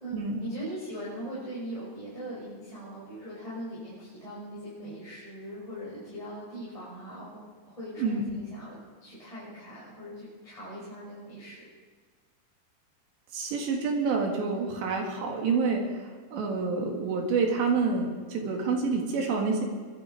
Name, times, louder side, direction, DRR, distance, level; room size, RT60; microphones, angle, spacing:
voice 1, 0.0-7.4 7.7-11.6, equal, 5° left, -10 dB, 6.2 m, -40 dB
voice 2, 8.0-8.4 13.3-19.6, right 4 dB, 65° right, 1 dB, 3.9 m, -28 dB
23.0 x 12.0 x 4.8 m, 1.5 s
omnidirectional pair, 5.8 m